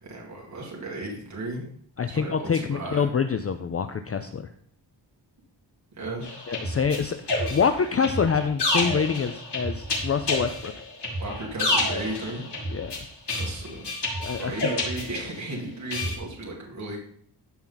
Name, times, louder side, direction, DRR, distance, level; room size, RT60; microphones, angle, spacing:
voice 1, 0.0-1.6 2.0-3.1 6.0-6.3 11.2-12.4 13.3-13.9 14.3-17.0, right 2 dB, 40° right, -2 dB, 2.1 m, -35 dB
voice 2, 2.0-4.4 6.5-10.7 12.7-13.0 14.2-14.6, left 6 dB, 35° left, 9 dB, 0.5 m, -26 dB
sound 1, 6.2-15.5 15.9-16.1, left 2 dB, 70° left, 4.3 m, -29 dB
13.5 x 5.7 x 4.0 m, 0.62 s
wide cardioid pair, 130°, 43 cm